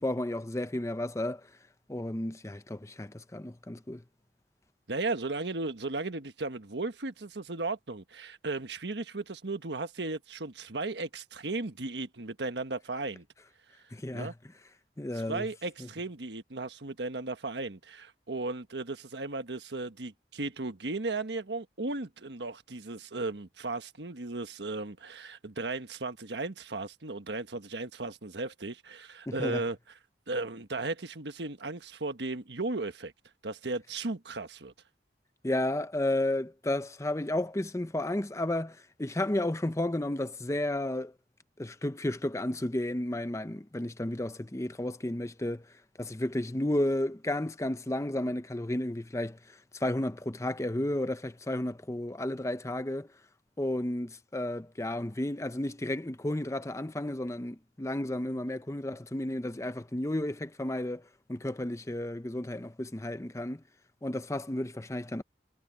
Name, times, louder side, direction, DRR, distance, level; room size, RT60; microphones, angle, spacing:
voice 1, 0.0-1.5 1.9-4.0 13.9-14.3 15.0-15.5 15.8-15.9 29.3-29.6 35.4-41.1 41.6-45.7 46.0-53.1 53.6-63.6 64.0-65.2, left 1 dB, 15° left, 0.7 m, -32 dB
voice 2, 4.9-13.2 14.1-14.3 15.1-29.8 30.3-33.1 33.4-34.7, right 3 dB, 75° right, 1.4 m, -35 dB
head